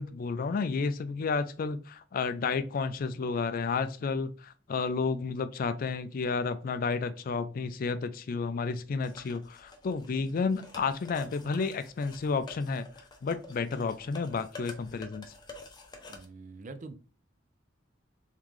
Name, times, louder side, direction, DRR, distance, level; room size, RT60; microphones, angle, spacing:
voice 1, 0.0-12.9 13.2-15.3, left 4 dB, 45° left, 0.4 m, -31 dB
sound 1, 9.0-16.2, left 2 dB, 20° left, 0.7 m, -49 dB
voice 2, 16.1-17.0, right 3 dB, 40° right, 0.5 m, -44 dB
3.7 x 3.6 x 3.1 m
head